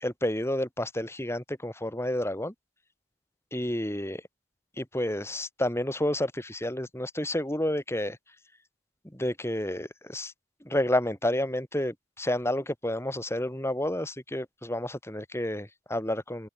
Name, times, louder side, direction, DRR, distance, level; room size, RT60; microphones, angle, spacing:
voice 1, 0.0-2.5 3.5-4.2 4.8-8.2 9.2-10.3 10.7-16.5, left 1 dB, 15° left, 3.5 m, -30 dB
open air
head